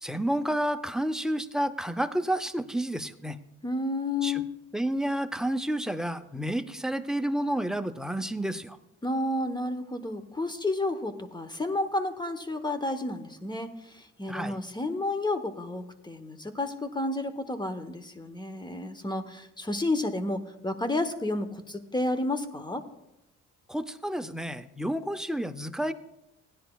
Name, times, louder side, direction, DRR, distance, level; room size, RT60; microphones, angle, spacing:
voice 1, 0.0-3.4 4.2-4.4 4.7-8.8 14.3-14.6 23.7-25.9, right 1 dB, ahead, 8 dB, 0.5 m, -30 dB
voice 2, 3.6-4.5 9.0-22.8, left 2 dB, 15° left, 9 dB, 0.9 m, -31 dB
17.0 x 10.0 x 2.3 m, 0.89 s
cardioid pair, 90°, 30 cm